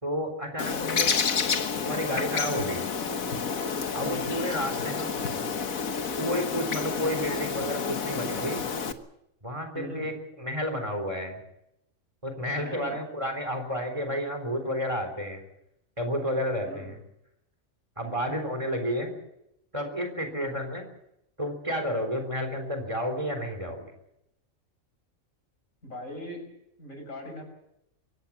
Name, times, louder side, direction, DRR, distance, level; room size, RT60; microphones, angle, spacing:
voice 1, 0.0-1.1 1.8-2.8 3.9-5.1 6.2-8.6 9.4-10.1 10.4-11.4 12.2-15.4 16.0-17.0 18.0-19.1 19.7-20.8 21.4-23.8, equal, 25° right, 6 dB, 3.8 m, -31 dB
Bird, 0.6-8.9, left 5 dB, 90° left, 1.7 m, -29 dB
voice 2, 4.0-4.3 9.7-10.1 12.6-13.0 16.6-16.9 18.0-18.1 20.4-20.6 25.8-26.5 26.8-27.4, left 1 dB, 70° left, 4 dB, 6.8 m, -40 dB
24.0 x 17.5 x 7.4 m, 0.81 s
omnidirectional pair, 1.4 m